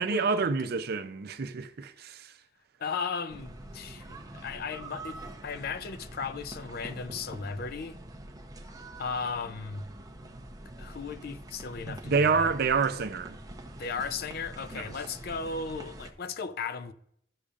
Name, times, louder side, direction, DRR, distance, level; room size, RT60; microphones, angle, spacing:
voice 1, 0.0-2.4 11.9-13.4 14.7-14.9, right 5 dB, 60° right, 0.6 m, -28 dB
voice 2, 2.8-4.1 4.3-8.0 9.0-9.9 10.8-12.5 13.8-16.9, left 5 dB, 55° left, 0.5 m, -36 dB
sound 1, 3.3-16.1, right 1 dB, 20° right, 0.7 m, -45 dB
12.5 x 6.7 x 2.5 m
head